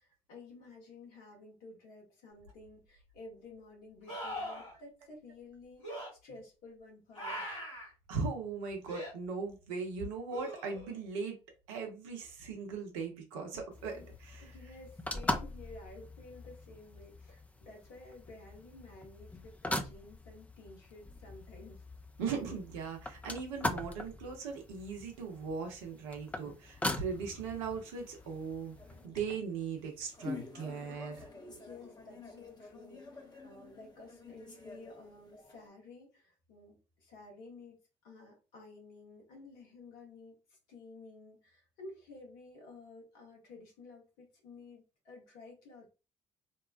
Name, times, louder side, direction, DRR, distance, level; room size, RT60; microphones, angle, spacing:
voice 1, 0.0-7.6 13.9-14.1 14.4-21.8 31.5-45.9, left 3 dB, 65° left, 0 dB, 1.0 m, -53 dB
sound 1, 2.5-2.6 4.1-4.7 5.8-6.1 7.1-7.9 8.9-9.1 10.3-11.0 14.1-14.2, equal, 90° left, 1.4 m, -41 dB
voice 2, 8.1-11.4 11.7-14.5 22.2-28.8 29.0-31.3, right 5 dB, 75° right, 3 dB, 0.6 m, -39 dB
sound 2, 13.7-29.1, left 1 dB, 10° left, 0.4 m, -41 dB
sound 3, 26.8-35.7, left 3 dB, 25° left, 0.8 m, -49 dB
2.9 x 2.1 x 2.3 m, 0.31 s
figure-of-eight pair, 45°, 16 cm